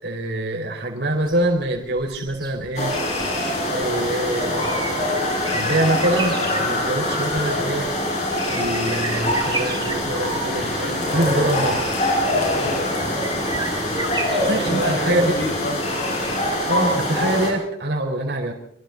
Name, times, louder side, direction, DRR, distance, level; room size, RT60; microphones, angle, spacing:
voice 1, 0.0-3.0 3.7-5.1 5.4-7.9 8.5-11.8 14.5-15.3 16.7-18.5, right 1 dB, 65° right, 1 dB, 4.5 m, -24 dB
sound 1, 1.1-17.1 17.4-17.5, right 3 dB, 25° right, 2.2 m, -35 dB
sound 2, 2.7-17.5, left 1 dB, 40° left, 7.2 m, -24 dB
sound 3, 9.8-15.2, equal, ahead, 5.5 m, -37 dB
voice 2, 12.5-15.8, left 1 dB, 60° left, 1 dB, 5.6 m, -31 dB
27.0 x 25.5 x 4.0 m, 0.72 s
head